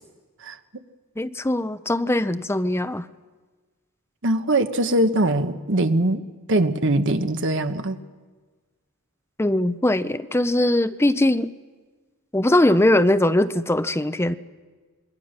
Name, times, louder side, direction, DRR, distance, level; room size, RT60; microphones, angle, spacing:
voice 1, 1.2-3.1 9.4-11.5 12.3-14.3, left 1 dB, 10° left, 11 dB, 0.7 m, -21 dB
voice 2, 4.2-6.2 6.5-8.0, right 1 dB, 60° right, 8 dB, 1.2 m, -21 dB
26.5 x 21.5 x 6.6 m, 1.4 s
head